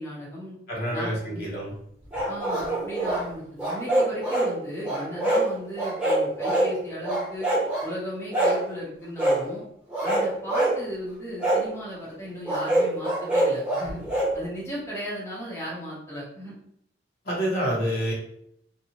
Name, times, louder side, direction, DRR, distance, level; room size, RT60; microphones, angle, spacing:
voice 1, 0.0-0.6 0.9-1.4 2.3-7.5 7.8-9.6 10.0-14.0 14.3-16.5, equal, 15° left, -7 dB, 0.7 m, -36 dB
voice 2, 0.7-1.7 17.2-18.1, equal, 60° left, -4 dB, 1.0 m, -27 dB
sound 1, 2.1-3.2 3.6-4.5 4.8-5.5 5.8-6.7 7.0-7.9 8.3-8.6 9.2-9.4 9.9-10.8 11.4-11.6 12.5-14.3, right 1 dB, 5° right, 1.0 m, -24 dB
2.7 x 2.3 x 2.8 m, 0.71 s
head